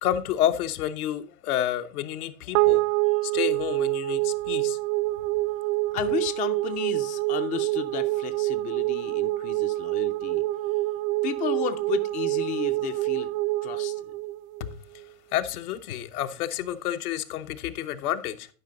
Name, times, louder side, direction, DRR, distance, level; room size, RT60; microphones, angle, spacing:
voice 1, 0.0-2.8 3.2-4.8 14.6-14.7 15.3-18.5, left 11 dB, 70° left, 0.8 m, -29 dB
sound 1, 2.5-15.1, right 20 dB, 65° right, 0.5 m, -26 dB
voice 2, 5.9-10.4 11.2-13.3 13.6-13.9, left 8 dB, 20° left, 0.4 m, -33 dB
11.0 x 5.0 x 3.8 m
hypercardioid pair, 100°, 46 cm